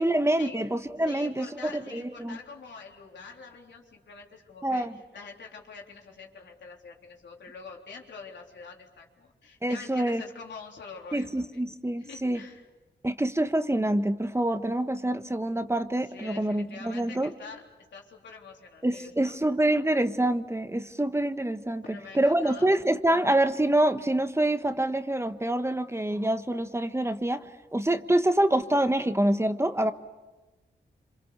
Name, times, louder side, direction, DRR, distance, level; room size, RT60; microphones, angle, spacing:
voice 1, 0.0-2.4 4.6-4.9 9.6-10.2 11.1-12.4 13.0-17.3 18.8-27.4 27.7-29.9, right 1 dB, 15° right, 9 dB, 1.3 m, -26 dB
voice 2, 1.0-11.6 12.0-12.7 16.0-17.7 17.9-19.4 21.8-22.7, left 4 dB, 85° left, 0 dB, 3.7 m, -45 dB
27.5 x 26.0 x 6.9 m, 1.2 s
cardioid pair, 60°, 18 cm